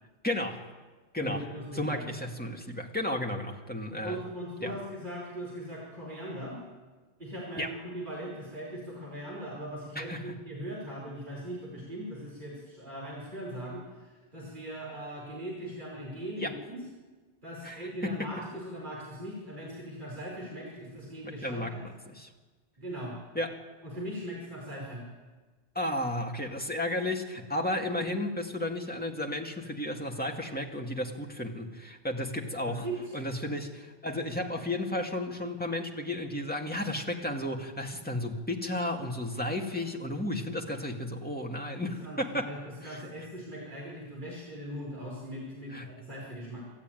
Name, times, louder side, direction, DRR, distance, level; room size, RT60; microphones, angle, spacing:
voice 1, 0.2-0.7 1.1-1.4 1.7-4.2 4.6-4.8 7.6-7.7 10.0-10.4 16.4-16.5 17.6-18.6 21.2-22.3 23.3-23.6 25.7-32.9 33.1-42.5 42.8-43.3 45.7-45.9, left 1 dB, 10° left, 1 dB, 2.3 m, -33 dB
voice 2, 1.2-2.0 4.0-6.6 7.2-16.8 17.4-21.8 22.8-23.1 23.8-25.0 32.7-33.0 41.7-42.2 42.4-46.7, right 1 dB, 45° right, -4 dB, 5.5 m, -40 dB
26.5 x 13.5 x 9.3 m, 1.3 s
omnidirectional pair, 1.1 m